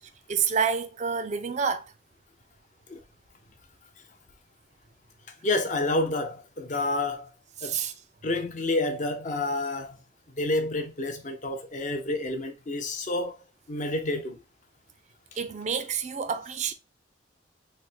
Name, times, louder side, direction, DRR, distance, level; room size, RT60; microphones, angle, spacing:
voice 1, 0.3-1.9 7.6-7.9 15.4-16.7, right 6 dB, 40° right, 0.4 m, -28 dB
voice 2, 5.4-7.3 7.6-7.8 8.2-10.0 10.4-13.4 13.7-14.4, left 2 dB, 40° left, 0.6 m, -29 dB
3.2 x 2.1 x 4.2 m
head